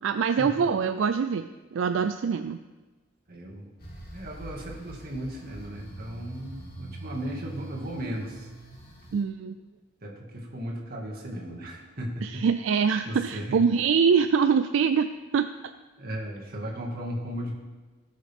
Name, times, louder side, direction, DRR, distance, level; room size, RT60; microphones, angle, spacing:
voice 1, 0.0-2.6 9.1-9.6 12.2-15.1 15.3-15.5, right 6 dB, 75° right, 9 dB, 0.4 m, -24 dB
voice 2, 3.3-3.7 4.1-8.5 10.0-12.4 13.1-13.6 16.0-17.5, right 1 dB, 50° right, -2 dB, 2.0 m, -36 dB
sound 1, 3.8-9.2, right 1 dB, 50° left, 2.6 m, -43 dB
17.5 x 6.4 x 3.6 m, 1.3 s
head